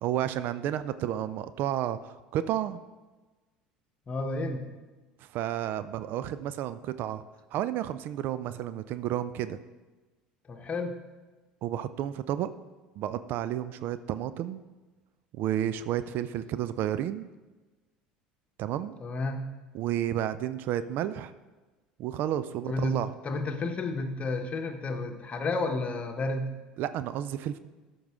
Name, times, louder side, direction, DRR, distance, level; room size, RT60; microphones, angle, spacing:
voice 1, 0.0-2.8 5.2-7.2 7.5-9.6 11.6-12.5 13.0-14.6 15.3-17.3 18.6-19.0 19.7-21.3 22.0-23.2 26.8-27.6, right 11 dB, 50° right, 13 dB, 0.4 m, -31 dB
voice 2, 4.1-4.7 10.5-11.0 19.0-19.5 22.7-23.0 23.2-26.5, left 3 dB, 30° left, 6 dB, 1.1 m, -31 dB
13.5 x 5.5 x 3.6 m, 1.2 s
figure-of-eight pair, 65°, 4 cm